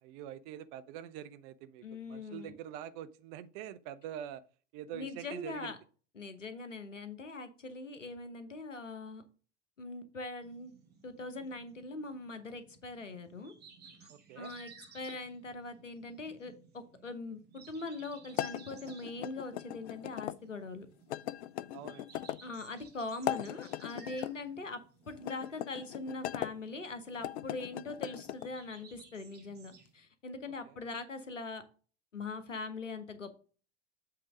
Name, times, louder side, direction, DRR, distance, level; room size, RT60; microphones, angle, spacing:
voice 1, 0.0-4.4 4.7-5.7 14.1-14.5 21.7-22.1 30.5-30.8, right 10 dB, 45° right, 0.7 m, -45 dB
voice 2, 1.8-2.6 4.9-5.8 6.2-9.2 9.8-10.7 11.0-13.5 14.0-14.1 14.4-20.9 22.4-24.8 25.1-31.6 32.1-33.4, left 3 dB, 90° left, 1.0 m, -42 dB
sound 1, 10.4-29.9, right 5 dB, 25° right, 1.6 m, -59 dB
sound 2, 18.3-20.4 21.1-22.4 23.1-24.3 25.2-26.5 27.1-28.5, left 13 dB, 65° left, 0.5 m, -39 dB
7.7 x 3.6 x 4.9 m
figure-of-eight pair, 85°, 36 cm